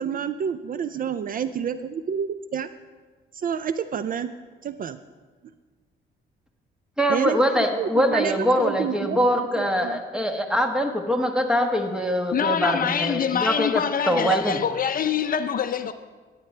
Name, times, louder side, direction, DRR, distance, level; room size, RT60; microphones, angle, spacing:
voice 1, 0.0-2.7 3.3-4.3 4.6-5.0 7.1-10.0, right 7 dB, 45° right, 13 dB, 0.4 m, -29 dB
voice 2, 7.0-13.8 14.1-14.6, equal, 5° right, 4 dB, 1.1 m, -23 dB
voice 3, 12.3-15.9, left 8 dB, 45° left, 10 dB, 0.5 m, -25 dB
14.5 x 9.4 x 3.3 m, 1.4 s
cardioid pair, 90°, 20 cm